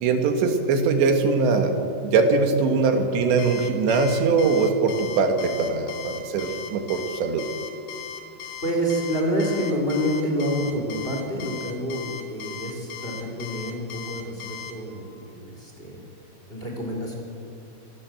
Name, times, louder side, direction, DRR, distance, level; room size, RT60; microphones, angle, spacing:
voice 1, 0.0-7.5, right 4 dB, 75° right, 5 dB, 3.8 m, -22 dB
Alarm, 3.4-14.7, left 8 dB, 65° left, 3.7 m, -37 dB
voice 2, 8.6-16.0 16.5-17.1, equal, 15° left, 0 dB, 4.0 m, -28 dB
25.5 x 18.0 x 7.8 m, 2.5 s
omnidirectional pair, 5.1 m